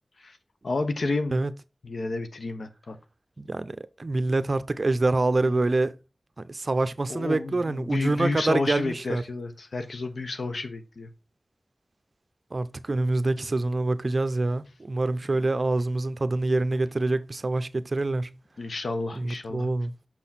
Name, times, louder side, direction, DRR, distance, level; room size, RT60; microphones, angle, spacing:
voice 1, 0.6-1.4 1.8-3.0 5.4-5.5 7.1-11.1 18.6-19.7, left 3 dB, 85° left, 1.1 m, -31 dB
voice 2, 3.4-6.0 6.4-9.2 12.5-18.3 19.1-19.9, right 2 dB, 55° right, 0.7 m, -26 dB
6.3 x 6.0 x 4.2 m
wide cardioid pair, 55°, 0 cm